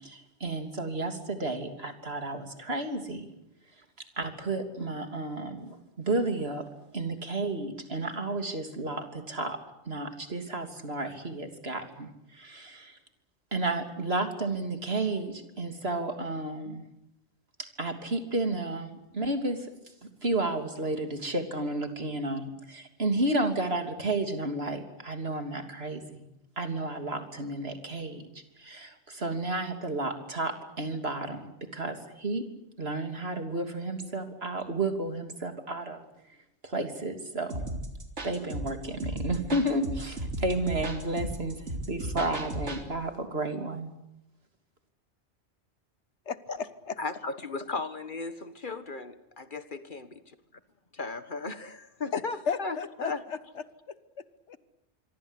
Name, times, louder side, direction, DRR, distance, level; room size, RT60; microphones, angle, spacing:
voice 1, 0.0-3.3 4.2-6.7 6.9-9.6 9.8-13.0 13.5-16.8 17.8-19.7 20.2-26.2 26.6-28.2 28.6-32.4 32.8-36.0 36.6-37.6 38.2-43.9, right 2 dB, 65° right, 6 dB, 3.3 m, -32 dB
sound 1, 37.5-42.8, right 1 dB, 90° right, 3.8 m, -35 dB
voice 2, 46.3-47.0 52.1-54.6, left 6 dB, 90° left, 14 dB, 1.6 m, -35 dB
voice 3, 47.0-49.1 49.5-50.3 50.9-53.2, left 3 dB, 45° left, 11 dB, 1.7 m, -36 dB
26.0 x 23.5 x 8.3 m, 0.87 s
omnidirectional pair, 1.1 m